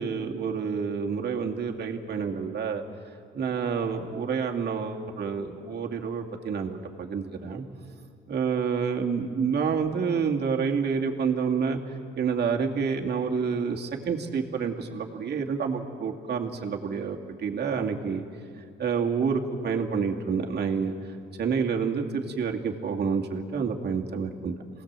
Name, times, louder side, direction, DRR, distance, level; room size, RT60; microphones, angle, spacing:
voice 1, 0.0-2.8 3.3-7.6 8.3-11.8 12.2-18.2 18.8-20.9 21.4-24.7, right 6 dB, 55° right, 2 dB, 2.3 m, -28 dB
27.5 x 18.5 x 7.5 m, 2.3 s
cardioid pair, 90°, 20 cm